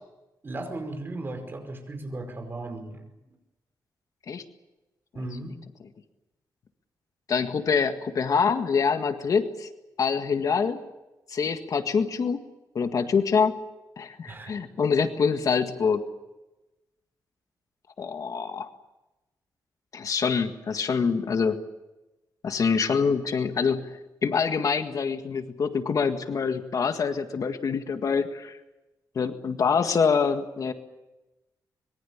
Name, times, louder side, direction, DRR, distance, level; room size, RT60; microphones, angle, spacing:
voice 1, 0.4-3.0 5.1-5.5 14.3-14.5, right 2 dB, 30° right, 6 dB, 5.2 m, -36 dB
voice 2, 7.3-9.7 10.0-10.8 11.3-12.4 12.7-13.5 14.0-16.0 18.0-18.7 19.9-21.6 22.4-23.9 24.2-28.6 29.1-30.7, left 5 dB, 50° left, 7 dB, 1.8 m, -25 dB
25.5 x 23.0 x 7.3 m, 1.0 s
wide cardioid pair, 140°, 7 cm